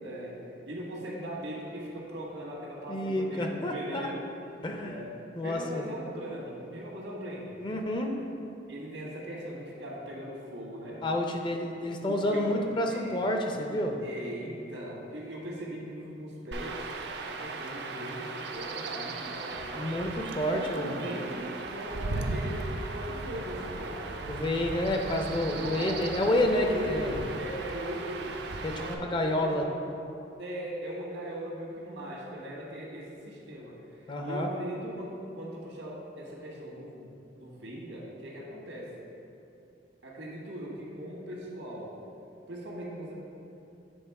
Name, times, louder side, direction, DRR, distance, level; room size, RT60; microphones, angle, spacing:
voice 1, 0.0-4.2 4.7-5.1 5.4-7.5 8.7-11.0 12.0-13.5 14.0-16.9 17.3-19.9 20.5-24.2 25.4-26.0 26.5-28.4 28.7-29.8 30.4-33.8 34.1-38.9 40.0-41.9 42.5-43.1, equal, 85° right, -4 dB, 1.5 m, -39 dB
voice 2, 2.9-4.1 4.6-5.0 5.4-5.8 7.6-8.1 11.0-14.0 19.8-21.0 24.3-27.2 28.6-29.7 34.1-34.5, left 1 dB, 25° left, 3 dB, 0.5 m, -29 dB
Chirp tweet / Wind / Stream, 16.5-28.9, right 3 dB, 65° right, 0.5 m, -37 dB
7.9 x 3.6 x 4.7 m, 2.7 s
head